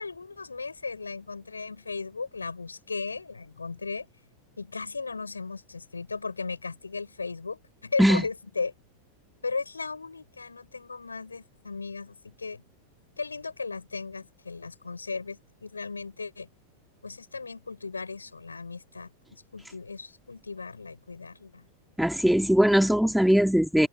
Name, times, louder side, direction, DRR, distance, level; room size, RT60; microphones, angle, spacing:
voice 1, 0.0-4.1 4.6-8.7 9.4-12.6 13.2-16.5 17.0-21.7, left 4 dB, 80° left, 7.7 m, -36 dB
voice 2, 22.0-23.9, equal, ahead, 2.9 m, -20 dB
open air
figure-of-eight pair, 90°, 0 cm